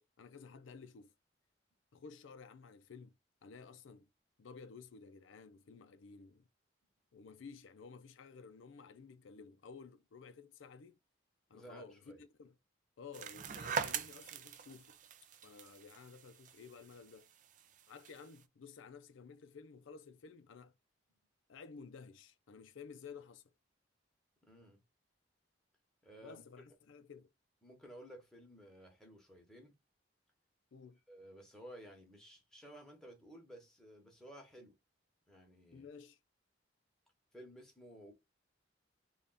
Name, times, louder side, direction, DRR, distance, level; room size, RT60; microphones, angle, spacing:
voice 1, 0.2-1.1 1.9-3.1 3.4-4.1 4.4-6.5 7.1-11.0 11.5-12.5 13.0-15.0 15.4-17.3 17.9-20.7 21.5-23.4 26.2-27.3 30.7-31.0 35.7-36.2, left 5 dB, 85° left, 0.4 m, -54 dB
voice 2, 11.5-12.2 24.4-24.8 26.0-26.4 27.6-29.7 31.1-34.8 35.3-35.8 37.3-38.1, right 1 dB, 5° left, 1.0 m, -55 dB
sound 1, 13.1-18.4, right 7 dB, 40° right, 0.3 m, -43 dB
3.4 x 2.3 x 3.9 m
head